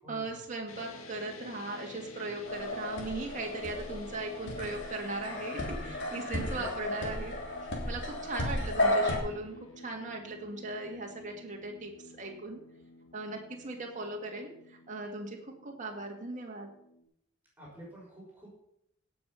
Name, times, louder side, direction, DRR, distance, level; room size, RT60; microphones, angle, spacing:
voice 1, 0.1-7.3 7.9-12.6 13.1-16.7, right 2 dB, 40° right, 0 dB, 2.2 m, -38 dB
sound 1, 0.7-17.0, left 2 dB, 80° left, 2.1 m, -51 dB
sound 2, 2.4-9.2, left 1 dB, 60° left, 3.3 m, -33 dB
voice 2, 6.3-6.6 17.6-18.5, right 1 dB, 10° right, -5 dB, 6.2 m, -49 dB
17.0 x 7.0 x 5.7 m, 0.75 s
head